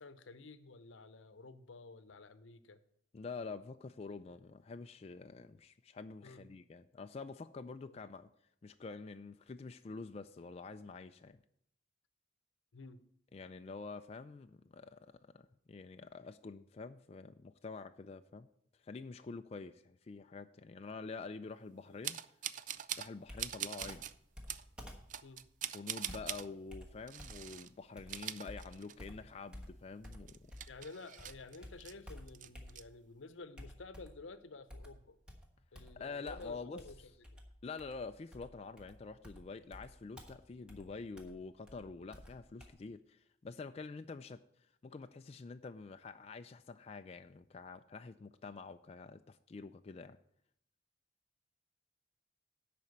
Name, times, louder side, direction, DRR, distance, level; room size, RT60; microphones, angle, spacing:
voice 1, 0.0-2.8 6.2-6.4 7.9-8.0 12.7-13.0 20.1-20.2 21.9-22.0 25.2-25.4 30.7-35.2 35.7-37.4, left 3 dB, 80° left, 12 dB, 0.7 m, -52 dB
voice 2, 3.1-8.3 8.6-11.4 13.3-15.1 15.3-18.5 18.8-22.2 23.0-24.1 25.7-30.4 36.0-36.8 37.6-44.4 44.8-50.2, left 4 dB, 30° left, 8 dB, 0.3 m, -47 dB
sound 1, 22.0-23.1 23.4-24.1 24.5-24.6 25.1-26.5 27.1-27.7 28.0-29.2 29.5-29.6 30.0-31.9 32.3-32.8, right 10 dB, 40° right, 0.4 m, -42 dB
Computer keyboard, 23.3-30.9 31.2-33.1 33.6-34.3 34.7-42.7, equal, 5° right, 1.3 m, -53 dB
11.0 x 4.3 x 7.9 m, 0.71 s
head